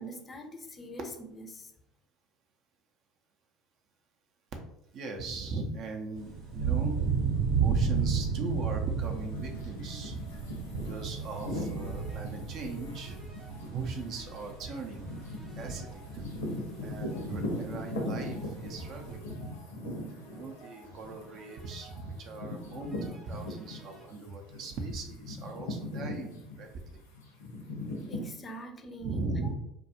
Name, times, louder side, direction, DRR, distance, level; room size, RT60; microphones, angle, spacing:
voice 1, 0.0-1.7 28.1-29.2, right 1 dB, 30° left, 5 dB, 0.4 m, -43 dB
voice 2, 4.9-7.2 7.6-10.4 10.7-13.2 13.7-15.1 15.6-16.3 16.8-19.6 20.3-27.0 29.0-29.5, right 3 dB, 55° right, 3 dB, 0.5 m, -38 dB
sound 1, 6.1-19.2, right 6 dB, 85° right, 1.0 m, -34 dB
sound 2, 9.0-24.1 24.5-28.3, left 1 dB, 85° left, 0.5 m, -40 dB
sound 3, 11.8-24.1, equal, 10° right, 0.6 m, -53 dB
2.3 x 2.2 x 2.8 m, 0.83 s
hypercardioid pair, 75°, 0 cm